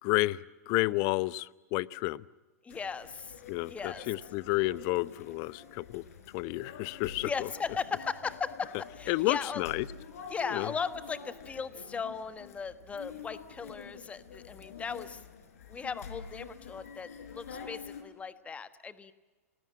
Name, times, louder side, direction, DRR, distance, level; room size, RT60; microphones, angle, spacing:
voice 1, 0.0-2.2 3.5-6.0 6.3-7.5 9.1-9.8 10.5-10.7, left 20 dB, 45° left, 19 dB, 0.8 m, -31 dB
voice 2, 2.6-3.4 3.7-4.0 7.2-9.6 10.3-15.2 15.7-19.1, left 5 dB, 15° left, 12 dB, 1.3 m, -37 dB
sound 1, 2.7-18.0, left 6 dB, 70° left, 4.6 m, -47 dB
29.5 x 20.0 x 8.7 m, 1.3 s
hypercardioid pair, 105°, 8 cm